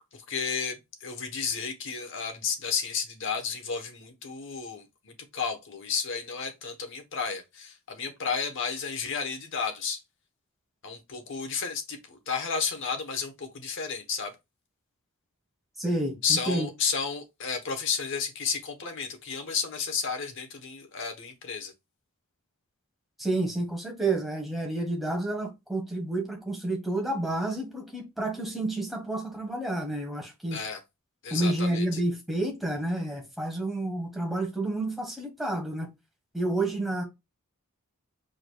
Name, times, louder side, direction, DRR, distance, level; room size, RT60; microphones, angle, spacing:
voice 1, 0.1-10.0 10.8-14.4 16.2-21.7 30.5-30.8 31.2-32.0, left 5 dB, 60° left, 1.0 m, -32 dB
voice 2, 15.8-16.7 23.2-30.6 31.3-35.9 36.3-37.0, right 2 dB, ahead, 1.2 m, -30 dB
4.9 x 4.5 x 2.3 m
head